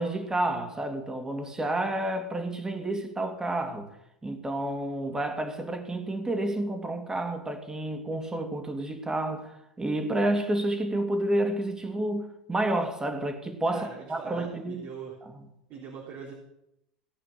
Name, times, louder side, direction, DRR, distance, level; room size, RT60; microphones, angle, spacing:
voice 1, 0.0-3.9 4.2-14.9, right 1 dB, 15° right, 2.6 m, -30 dB
voice 2, 13.7-15.1 15.7-16.3, right 6 dB, 55° right, 3.4 m, -41 dB
17.0 x 8.5 x 7.1 m
hypercardioid pair, 80°, 4 cm